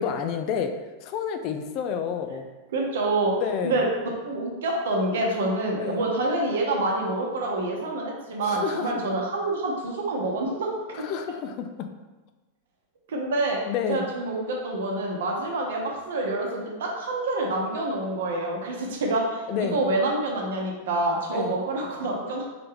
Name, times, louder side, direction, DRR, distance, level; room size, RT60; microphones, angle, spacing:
voice 1, 0.0-2.5 3.4-3.8 5.8-6.0 8.5-9.0 11.0-11.9 13.6-14.1 19.5-19.8 21.3-21.5, left 7 dB, 40° left, 6 dB, 0.3 m, -29 dB
voice 2, 2.7-3.4 3.6-3.9 4.2-10.7 11.0-11.1 13.1-13.6 13.9-22.4, right 2 dB, 60° right, -1 dB, 0.9 m, -27 dB
3.9 x 3.3 x 3.4 m, 1.2 s
figure-of-eight pair, 90°, 0 cm